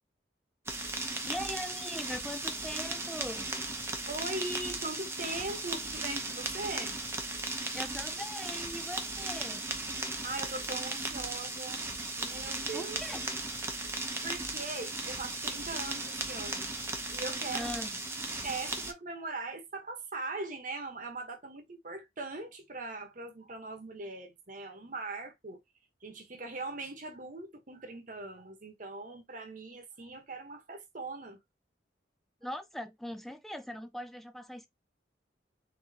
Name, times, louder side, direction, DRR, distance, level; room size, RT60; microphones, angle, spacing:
sound 1, 0.7-18.9, right 2 dB, 15° right, 0.8 m, -36 dB
voice 1, 1.2-3.5 7.7-9.7 12.7-13.2 17.5-17.9 32.4-34.7, equal, ahead, 0.4 m, -40 dB
voice 2, 4.1-7.0 10.2-11.9 12.2-13.0 14.0-17.7 18.4-25.6 26.0-31.4, right 3 dB, 45° right, 1.1 m, -40 dB
4.1 x 3.8 x 2.8 m
head